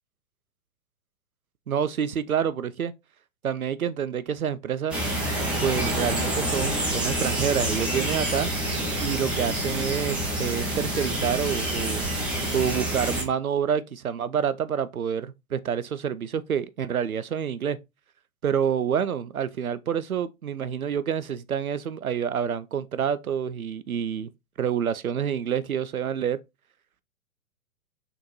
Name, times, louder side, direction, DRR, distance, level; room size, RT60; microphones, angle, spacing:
voice 1, 1.7-2.9 3.4-5.0 5.6-8.5 9.0-12.0 12.5-17.8 18.4-24.3 24.6-26.4, right 8 dB, 90° right, 0.5 m, -28 dB
sound 1, 4.9-13.2, right 1 dB, 5° right, 0.7 m, -27 dB
3.9 x 3.5 x 2.9 m
figure-of-eight pair, 115°, 41 cm